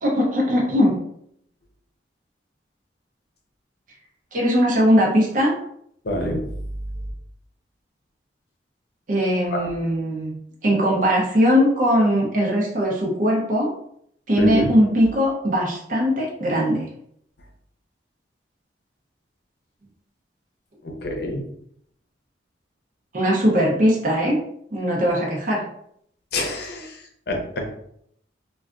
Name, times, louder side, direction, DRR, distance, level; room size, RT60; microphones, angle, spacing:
voice 1, 0.0-1.0 4.3-5.5 9.1-13.7 14.3-16.8 23.1-24.4 24.7-25.6, equal, 50° right, -2 dB, 0.7 m, -20 dB
voice 2, 6.0-6.4 9.5-9.6 14.4-14.7 20.8-21.4 26.3-27.7, equal, 60° left, 2 dB, 0.7 m, -26 dB
3.4 x 2.3 x 2.5 m, 0.70 s
head